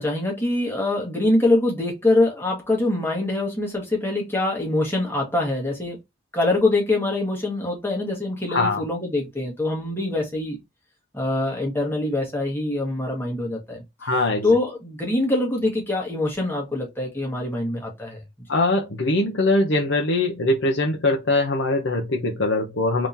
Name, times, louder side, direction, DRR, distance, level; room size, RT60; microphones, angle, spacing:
voice 1, 0.0-6.0 6.3-10.6 11.1-13.8 14.4-18.2, left 2 dB, 10° left, 1.5 m, -24 dB
voice 2, 8.5-8.8 14.0-14.5 18.5-23.1, left 2 dB, 80° left, 0.7 m, -22 dB
3.6 x 3.0 x 2.7 m
head